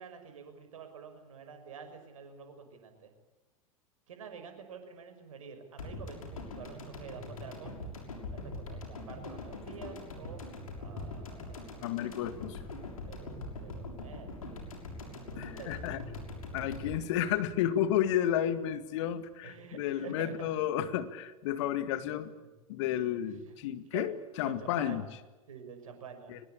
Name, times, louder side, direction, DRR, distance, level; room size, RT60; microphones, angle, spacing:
voice 1, 0.0-3.1 4.1-7.7 8.3-10.5 10.8-11.9 13.0-14.6 15.1-15.9 16.5-16.6 19.4-20.3 21.9-22.1 23.2-23.5 23.9-24.1 24.4-25.0 25.5-26.4, right 6 dB, 65° right, 7 dB, 6.1 m, -48 dB
sound 1, 5.8-18.1 18.4-18.5, left 2 dB, 70° left, 6.5 m, -43 dB
voice 2, 11.8-12.6 15.4-16.0 16.5-22.3 22.7-25.0 26.3-26.4, left 11 dB, 55° left, 12 dB, 2.1 m, -32 dB
24.0 x 21.0 x 8.7 m, 1.1 s
figure-of-eight pair, 90°, 18 cm